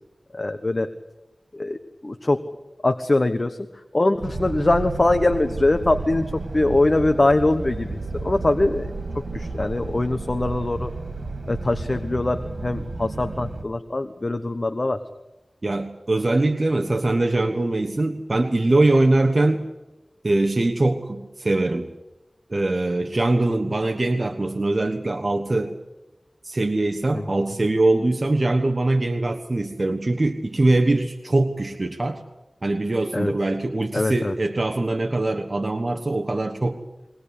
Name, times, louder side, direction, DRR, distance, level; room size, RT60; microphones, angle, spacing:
voice 1, 0.3-0.9 1.5-2.4 2.8-3.6 3.9-6.2 6.5-8.9 9.1-10.9 11.5-15.0 27.1-27.2 33.1-33.3 33.9-34.3, left 2 dB, 45° left, 8 dB, 1.2 m, -22 dB
sound 1, 4.2-13.6, right 3 dB, 75° right, 3.1 m, -32 dB
voice 2, 15.6-19.6 20.2-21.9 22.5-25.7 26.4-32.2 32.6-36.8, right 2 dB, 50° right, 4 dB, 1.3 m, -22 dB
22.5 x 19.0 x 8.4 m, 1.0 s
wide cardioid pair, 50°, 0 cm